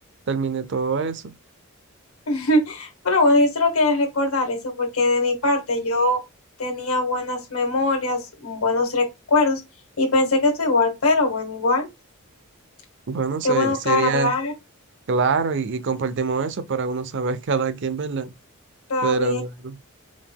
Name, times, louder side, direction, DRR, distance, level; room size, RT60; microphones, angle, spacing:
voice 1, 0.3-1.3 13.1-14.3 15.1-18.3 19.0-19.8, right 5 dB, 55° right, 0.5 m, -25 dB
voice 2, 2.3-6.2 6.6-9.6 10.0-11.9 13.4-14.5 18.9-19.4, left 2 dB, 80° left, 1.5 m, -21 dB
4.9 x 3.6 x 2.2 m
head